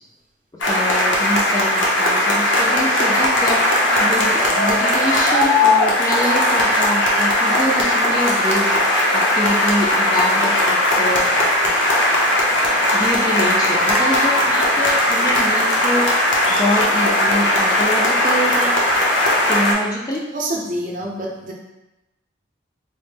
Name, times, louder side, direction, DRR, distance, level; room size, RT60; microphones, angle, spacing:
sound 1, 0.6-19.7, left 1 dB, 75° left, 0.7 m, -18 dB
voice 1, 0.6-3.6 4.0-8.7 9.1-11.3 11.6-11.7 12.9-16.1 16.5-18.8 19.5-20.2, equal, 20° left, -2 dB, 0.3 m, -25 dB
voice 2, 20.3-21.5, right 1 dB, 40° right, -2 dB, 0.5 m, -26 dB
4.1 x 2.0 x 3.3 m, 0.97 s
head